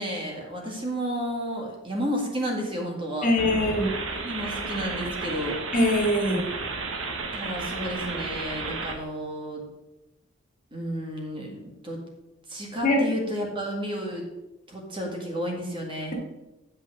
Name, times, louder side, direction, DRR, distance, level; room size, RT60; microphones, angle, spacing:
voice 1, 0.0-3.3 4.1-5.6 7.3-9.6 10.7-12.0 12.5-14.3 14.7-16.1, equal, 25° right, 0 dB, 1.9 m, -32 dB
voice 2, 3.2-4.0 5.7-6.4 12.8-13.1, left 1 dB, 45° left, 0 dB, 2.0 m, -22 dB
sound 1, 3.4-9.0, right 3 dB, 85° right, 1.3 m, -33 dB
8.6 x 5.5 x 6.3 m, 1.0 s
head